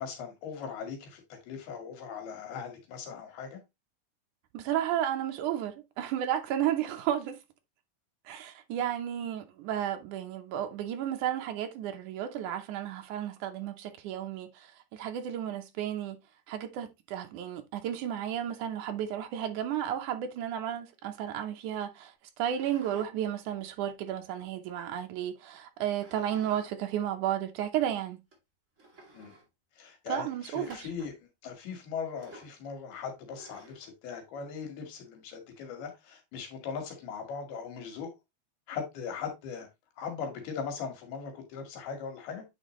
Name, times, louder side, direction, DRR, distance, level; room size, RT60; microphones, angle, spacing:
voice 1, 0.0-3.6 29.1-29.3 29.8-31.1 31.4-38.1 38.7-39.7 40.0-42.5, left 6 dB, 85° left, 3.8 m, -39 dB
voice 2, 4.5-7.4 8.3-16.2 16.5-22.1 22.4-28.2 30.1-30.9, right 10 dB, 75° right, 1.9 m, -33 dB
sound 1, 22.5-23.1 23.5-24.9 25.9-26.7 27.0-27.1 27.8-27.9 28.3-28.4 28.8-29.5 30.6-31.2 32.2-32.6 33.3-33.9, right 2 dB, 20° right, 2.8 m, -53 dB
9.3 x 4.5 x 3.1 m
omnidirectional pair, 4.3 m